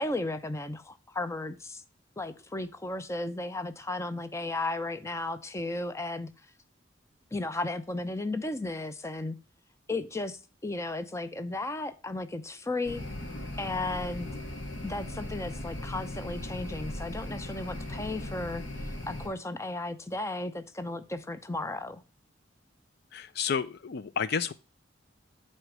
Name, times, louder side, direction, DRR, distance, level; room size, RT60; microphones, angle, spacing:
voice 1, 0.0-1.8 2.2-6.3 7.3-9.4 9.9-13.0 13.6-14.3 14.8-22.0, left 2 dB, 15° left, 0.6 m, -34 dB
sound 1, 12.8-19.3, left 1 dB, 75° left, 2.3 m, -38 dB
voice 2, 23.1-24.5, left 6 dB, 55° left, 0.4 m, -31 dB
8.1 x 4.4 x 6.0 m
head